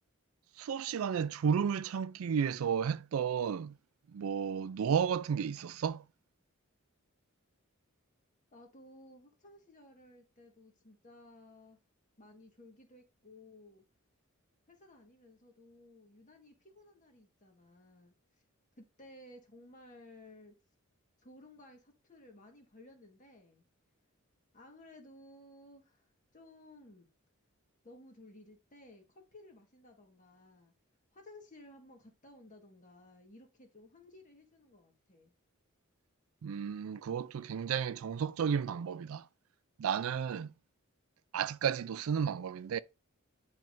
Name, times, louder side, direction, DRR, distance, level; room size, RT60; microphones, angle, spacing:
voice 1, 0.6-3.7 4.1-6.0 36.4-39.2 39.8-40.5 41.3-42.8, right 7 dB, 75° right, 0.4 m, -32 dB
voice 2, 8.5-11.8 12.2-13.8 14.7-18.1 18.8-20.5 21.2-23.7 24.5-26.1 26.3-27.1 27.8-30.7 31.1-35.3, left 1 dB, 35° left, 1.5 m, -56 dB
10.5 x 3.5 x 2.6 m
head